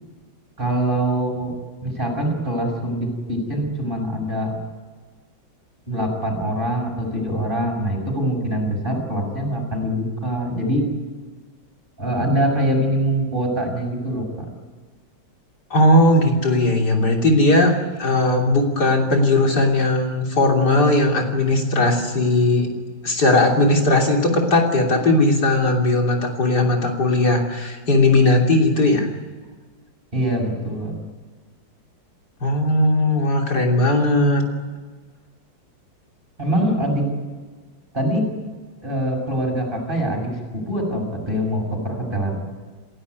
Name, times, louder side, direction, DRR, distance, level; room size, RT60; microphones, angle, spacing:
voice 1, 0.6-1.5 1.8-4.5 5.9-10.8 12.0-14.3 30.1-30.9 36.4-37.0 37.9-38.2 38.8-40.3 40.7-42.4, right 1 dB, 25° right, 2 dB, 7.1 m, -23 dB
voice 2, 15.7-22.7 23.0-29.1 32.4-34.4, left 2 dB, 60° left, 1 dB, 3.8 m, -18 dB
29.0 x 16.0 x 9.6 m, 1.4 s
omnidirectional pair, 2.0 m